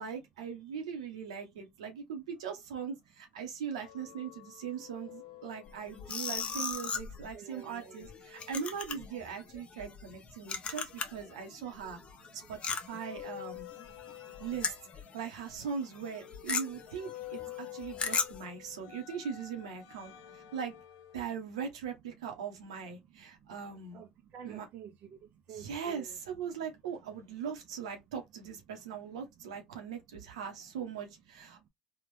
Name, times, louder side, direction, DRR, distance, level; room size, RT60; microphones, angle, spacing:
voice 1, 0.0-12.0 12.3-13.7 14.4-14.8 15.1-20.7 21.1-24.0 24.4-24.7 25.5-31.7, right 7 dB, 90° right, 1.0 m, -40 dB
sound 1, 3.7-6.6 7.8-9.5 10.7-12.3 12.8-21.3, left 15 dB, 80° left, 0.9 m, -50 dB
sound 2, 5.7-11.3 11.6-15.2 15.5-15.7 15.9-18.4, left 5 dB, 35° left, 0.9 m, -37 dB
voice 2, 7.3-8.1 9.6-10.0 10.3-10.7 11.9-12.5 13.1-13.2 13.6-14.4 17.1-17.8 18.6-18.9 20.1-20.6 23.0-23.6 23.9-26.2 28.9-29.8 31.5-31.7, right 8 dB, 55° right, 0.7 m, -53 dB
3.5 x 2.5 x 3.2 m
hypercardioid pair, 85°, 3 cm